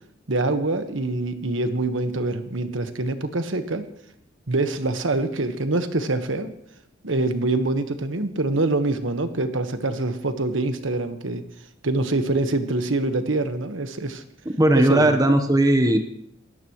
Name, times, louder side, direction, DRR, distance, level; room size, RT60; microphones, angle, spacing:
voice 1, 0.3-3.8 4.5-6.5 7.0-11.4 11.8-14.2 14.7-15.2, right 2 dB, 85° right, 8 dB, 1.4 m, -25 dB
voice 2, 14.6-16.0, right 1 dB, 20° right, 6 dB, 1.1 m, -17 dB
28.5 x 13.5 x 3.1 m, 0.72 s
head